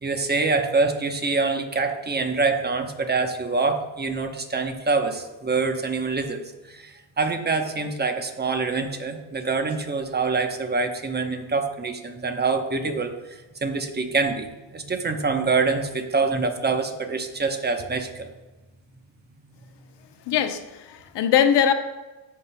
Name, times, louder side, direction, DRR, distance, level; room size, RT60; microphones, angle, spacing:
voice 1, 0.0-18.3, right 4 dB, 20° right, 5 dB, 0.9 m, -25 dB
voice 2, 20.3-21.7, left 9 dB, 60° left, 7 dB, 0.9 m, -21 dB
14.0 x 5.2 x 2.2 m, 1.1 s
cardioid pair, 100°, 47 cm